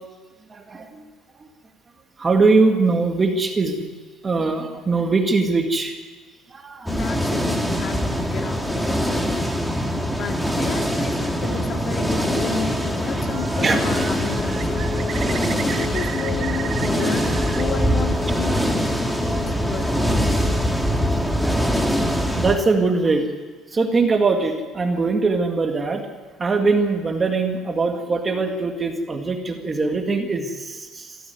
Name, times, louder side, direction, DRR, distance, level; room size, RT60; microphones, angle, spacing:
voice 1, 0.5-1.0 1.4-1.5 2.2-3.9 4.2-5.9 6.5-6.9 13.6-13.8 21.4-22.0 22.4-23.3 23.7-26.0 26.4-31.2, right 3 dB, 25° right, 4 dB, 1.9 m, -21 dB
voice 2, 6.9-15.3 15.6-18.7 19.0-20.1, left 5 dB, 45° left, 4 dB, 2.2 m, -32 dB
sound 1, 6.9-22.6, equal, 5° left, 1.9 m, -23 dB
Bird, 13.1-13.6 13.9-17.6 17.9-18.7, right 11 dB, 65° right, 1.2 m, -36 dB
21.5 x 14.0 x 9.4 m, 1.4 s
cardioid pair, 135°, 0 cm